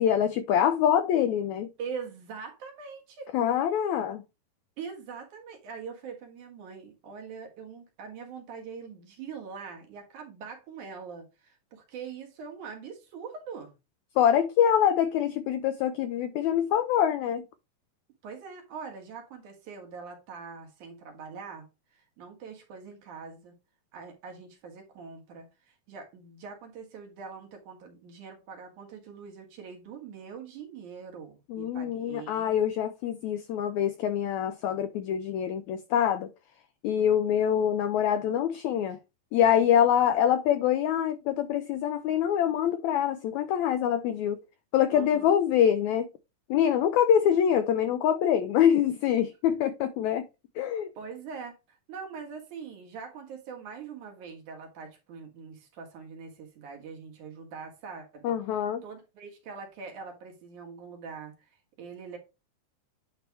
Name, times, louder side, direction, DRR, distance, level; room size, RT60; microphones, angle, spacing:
voice 1, 0.0-1.7 3.3-4.2 14.2-17.4 31.5-36.3 36.8-39.0 39.3-44.4 44.7-46.1 46.5-50.3 50.6-50.9 58.2-58.8, left 9 dB, 85° left, 1.6 m, -25 dB
voice 2, 1.8-3.3 4.8-13.7 18.2-21.7 21.9-23.6 23.9-32.5 39.8-39.9 44.9-45.4 51.0-58.3 58.8-62.2, right 5 dB, 65° right, 2.9 m, -43 dB
9.5 x 3.3 x 4.6 m
omnidirectional pair, 3.9 m